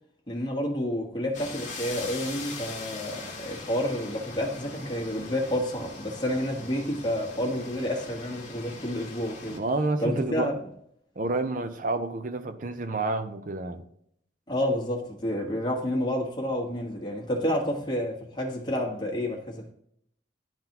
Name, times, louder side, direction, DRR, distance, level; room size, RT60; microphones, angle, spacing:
voice 1, 0.3-9.6 10.0-10.5 14.5-19.7, equal, 25° left, 1.3 m, -29 dB
sound 1, 1.3-9.6, left 3 dB, 40° left, 1.3 m, -41 dB
voice 2, 9.5-10.5 11.2-13.8, right 2 dB, 45° right, 0.6 m, -29 dB
10.5 x 3.9 x 2.9 m
head